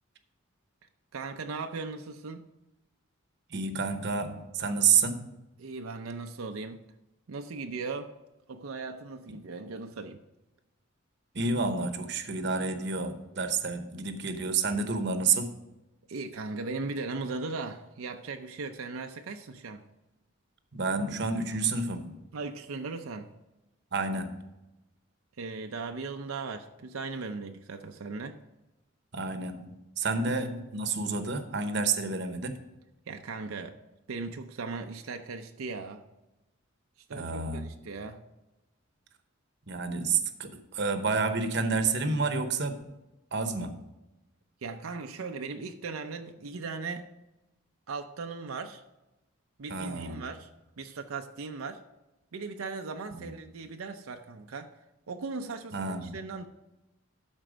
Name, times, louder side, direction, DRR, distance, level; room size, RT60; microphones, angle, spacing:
voice 1, 1.1-2.5 5.6-6.8 7.3-8.1 8.5-10.2 16.1-19.9 22.3-23.3 25.4-28.4 30.2-30.4 33.1-33.8 34.1-36.1 37.1-38.2 44.6-47.1 47.9-48.8 49.6-50.5 50.8-51.8 52.3-54.7 55.1-56.5, right 4 dB, 85° right, 0.6 m, -38 dB
voice 2, 3.5-5.3 9.3-9.4 11.3-15.5 20.7-22.2 23.9-24.4 29.1-32.6 37.1-37.8 39.7-42.8 43.3-43.8 49.7-50.3 53.1-53.3 55.7-56.2, right 4 dB, 55° right, 0.9 m, -29 dB
12.5 x 4.5 x 5.0 m
head